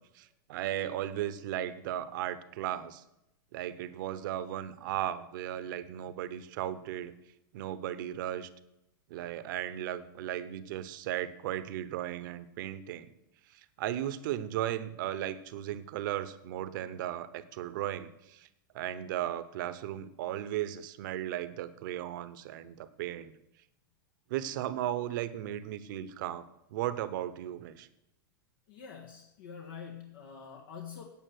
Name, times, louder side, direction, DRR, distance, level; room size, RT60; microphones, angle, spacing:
voice 1, 0.1-3.0 3.5-7.1 7.5-8.5 9.1-13.1 13.5-18.5 18.7-23.3 24.3-27.9, right 12 dB, 60° right, 14 dB, 0.9 m, -36 dB
voice 2, 28.7-31.0, left 7 dB, 70° left, 1 dB, 1.6 m, -46 dB
9.2 x 8.5 x 6.6 m, 0.85 s
hypercardioid pair, 125°, 12 cm